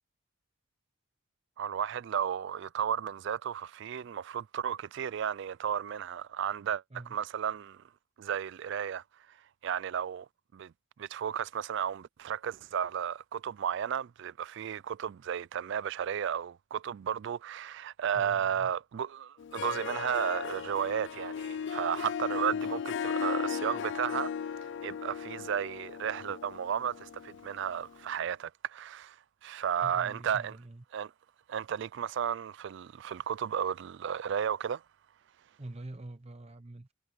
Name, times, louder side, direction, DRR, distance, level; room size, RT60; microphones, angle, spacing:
voice 1, 1.6-6.8 7.1-7.8 8.2-9.4 9.6-10.7 11.0-24.3 24.8-29.2 29.4-30.5 30.9-31.1 31.5-34.8, right 8 dB, 60° right, 0.3 m, -33 dB
voice 2, 18.1-18.7 29.8-30.8 35.6-36.9, right 2 dB, 30° right, 0.7 m, -45 dB
Harp, 19.4-28.0, left 7 dB, 60° left, 0.4 m, -36 dB
head